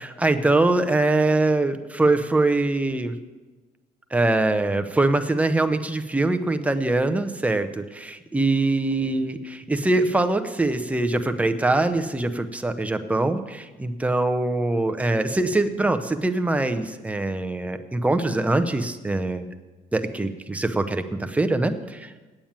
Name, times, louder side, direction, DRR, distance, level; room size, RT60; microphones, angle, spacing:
voice 1, 0.0-3.2 4.1-19.5 19.9-22.1, right 2 dB, 10° right, 8 dB, 0.7 m, -23 dB
8.9 x 8.7 x 7.4 m, 1.2 s
cardioid pair, 110°, 17 cm